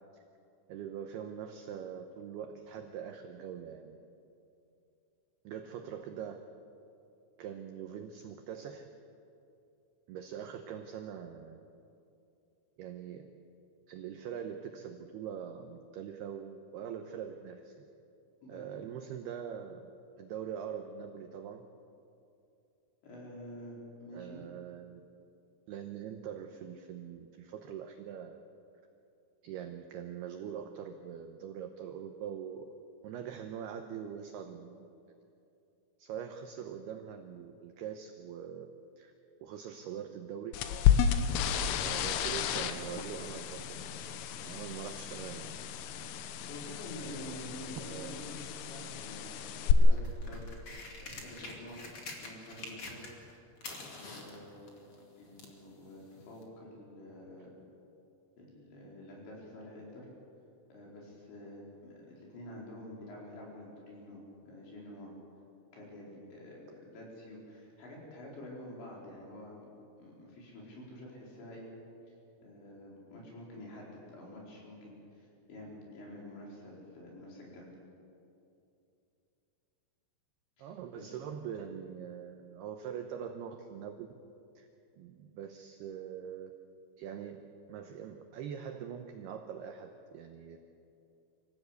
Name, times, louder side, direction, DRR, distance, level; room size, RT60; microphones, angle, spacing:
voice 1, 0.7-4.0 5.4-6.4 7.4-8.9 10.1-11.6 12.8-13.3 13.9-17.8 18.5-19.9 20.2-21.6 24.1-25.0 25.7-28.4 29.4-32.7 33.0-34.9 36.0-38.7 39.0-39.1 39.4-40.6 41.8-45.6 47.8-48.2 57.4-57.5 80.6-84.1 84.6-84.7 85.0-86.5 87.0-87.4 87.7-90.6, right 8 dB, 85° right, 5 dB, 2.3 m, -43 dB
voice 2, 18.4-18.8 23.0-24.4 46.0-48.4 48.6-50.0 50.3-50.5 51.0-53.0 53.9-54.8 55.2-57.5 58.4-60.1 60.7-65.1 65.7-69.7 70.0-71.7 72.4-77.7 80.6-81.2, left 1 dB, 60° left, -3 dB, 6.6 m, -48 dB
sound 1, 40.5-49.7, left 9 dB, 80° left, 3.4 m, -32 dB
sound 2, 49.8-53.3 53.6-55.6 56.4-56.5, left 3 dB, 40° left, 2.4 m, -46 dB
25.5 x 15.5 x 8.3 m, 2.7 s
omnidirectional pair, 5.9 m